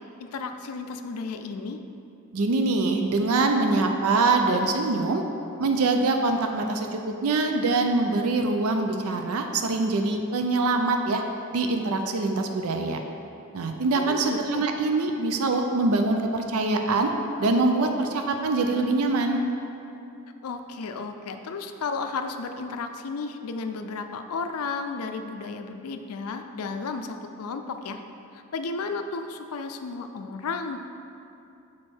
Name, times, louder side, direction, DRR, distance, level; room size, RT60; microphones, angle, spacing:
voice 1, 0.2-1.8 13.9-14.6 20.4-28.0 28.3-30.8, left 4 dB, 75° left, 7 dB, 0.4 m, -33 dB
voice 2, 2.3-5.2 5.6-11.2 11.5-13.0 13.5-17.1 17.4-19.5, right 3 dB, 70° right, 4 dB, 0.5 m, -24 dB
6.4 x 4.3 x 4.4 m, 2.8 s
head